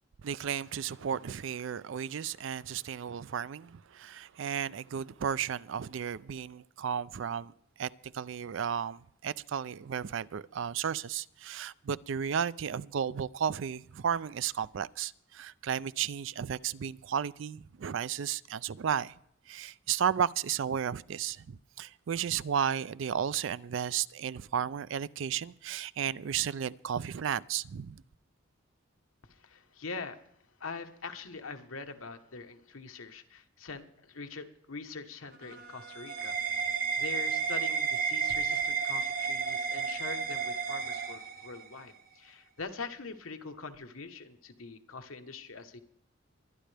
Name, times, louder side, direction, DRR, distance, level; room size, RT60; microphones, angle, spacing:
voice 1, 0.2-7.5 7.8-19.1 19.5-28.0, right 8 dB, 65° right, 0.4 m, -33 dB
voice 2, 29.2-30.2 30.6-36.7 37.0-45.8, left 4 dB, 85° left, 1.2 m, -43 dB
sound 1, 35.3-41.8, right 6 dB, 45° right, 1.1 m, -32 dB
23.5 x 10.0 x 3.4 m
head